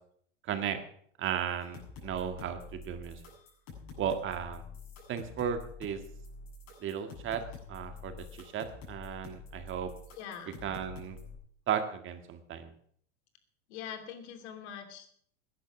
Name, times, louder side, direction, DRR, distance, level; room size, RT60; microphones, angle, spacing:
voice 1, 0.5-0.8 1.2-3.2 4.0-4.6 5.1-6.0 6.8-7.4 7.7-9.9 10.6-11.2 11.7-12.7, right 8 dB, 35° right, 7 dB, 1.8 m, -35 dB
sound 1, 1.6-11.4, left 4 dB, 50° left, 7.5 m, -47 dB
voice 2, 10.2-10.7 13.7-15.1, left 8 dB, 70° left, 7 dB, 2.9 m, -43 dB
15.0 x 10.5 x 6.0 m, 0.63 s
supercardioid pair, 120°, 35 cm